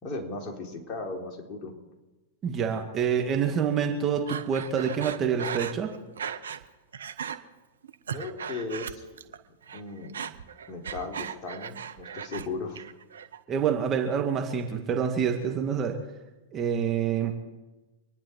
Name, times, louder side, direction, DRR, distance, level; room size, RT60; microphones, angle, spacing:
voice 1, 0.0-1.7 8.1-9.1 9.7-10.2 10.7-12.8, left 3 dB, 30° left, 0 dB, 3.8 m, -36 dB
voice 2, 2.4-5.9 13.5-16.0 16.5-17.3, right 7 dB, 25° right, 3 dB, 2.0 m, -27 dB
Breathing, 4.3-6.7 6.9-7.4 7.8-9.4 9.6-12.5 12.8-13.4, right 7 dB, 75° right, 1.0 m, -37 dB
26.5 x 10.5 x 4.7 m, 1.1 s
hypercardioid pair, 105°, 0 cm